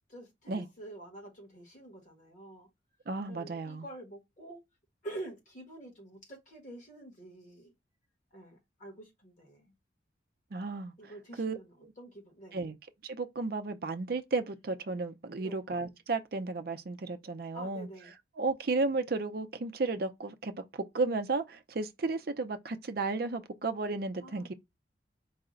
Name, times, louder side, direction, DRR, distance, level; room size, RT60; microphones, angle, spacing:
voice 1, 0.1-2.7 3.3-4.6 5.0-7.7 8.3-9.7 11.0-12.6 15.3-15.6 17.5-18.1 24.2-24.5, right 1 dB, 45° left, 1.3 m, -47 dB
voice 2, 3.1-3.8 10.5-10.9 11.4-11.6 12.5-12.8 13.0-17.9 18.4-24.5, right 3 dB, 55° right, 0.5 m, -33 dB
4.7 x 2.2 x 3.7 m
head